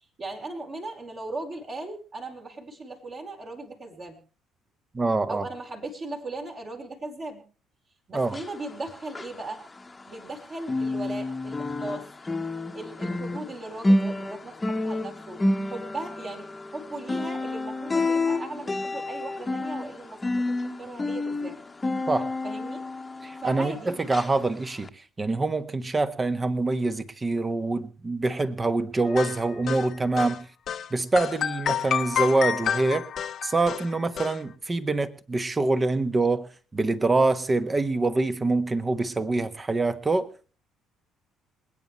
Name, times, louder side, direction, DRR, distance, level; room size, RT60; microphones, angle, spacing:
voice 1, 0.2-4.2 5.3-7.4 8.1-9.6 10.1-12.1 12.7-21.6 22.4-22.8 23.4-23.9, right 2 dB, 40° right, 1 dB, 4.5 m, -38 dB
voice 2, 4.9-5.4 8.1-8.3 22.1-22.3 23.2-24.9 25.2-30.4 30.9-33.1 33.4-40.3, right 3 dB, 25° right, 12 dB, 1.4 m, -25 dB
sound 1, 8.2-10.4 10.6-23.7 24.1-24.3 24.8-24.9, left 2 dB, 20° left, 1.3 m, -29 dB
sound 2, 29.1-30.4 30.7-30.9 31.2-34.4, left 8 dB, 50° left, 0.9 m, -29 dB
26.5 x 9.4 x 3.2 m, 0.38 s
figure-of-eight pair, 50°, 0 cm